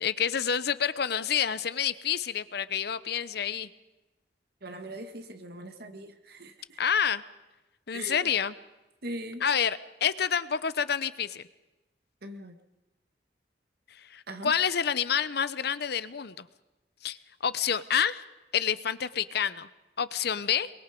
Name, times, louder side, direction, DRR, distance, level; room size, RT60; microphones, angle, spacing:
voice 1, 0.0-3.7 6.8-7.2 7.9-8.5 9.4-11.4 14.1-16.5 17.0-17.2 17.4-18.2 18.5-19.7 20.0-20.7, left 8 dB, 65° left, 15 dB, 0.8 m, -28 dB
voice 2, 4.6-6.8 7.9-8.3 9.0-9.4 12.2-12.6 14.3-14.5, right 1 dB, 65° right, 6 dB, 2.1 m, -41 dB
23.5 x 22.5 x 5.3 m, 1.1 s
head